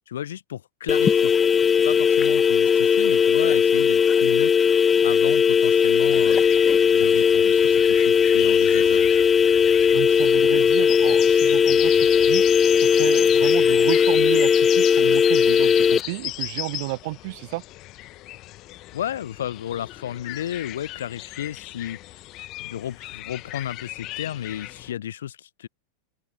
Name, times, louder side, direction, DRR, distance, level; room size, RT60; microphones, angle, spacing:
voice 1, 0.1-1.3 1.8-4.5 5.0-9.1 18.9-22.0 22.6-25.7, left 10 dB, 60° left, 1.1 m, -33 dB
sound 1, 0.9-16.0, left 6 dB, 20° left, 0.5 m, -18 dB
sound 2, 6.0-24.9, left 18 dB, 40° left, 1.4 m, -36 dB
voice 2, 9.9-12.5 12.8-17.6, right 24 dB, 50° right, 1.1 m, -32 dB
open air
figure-of-eight pair, 90°, 0 cm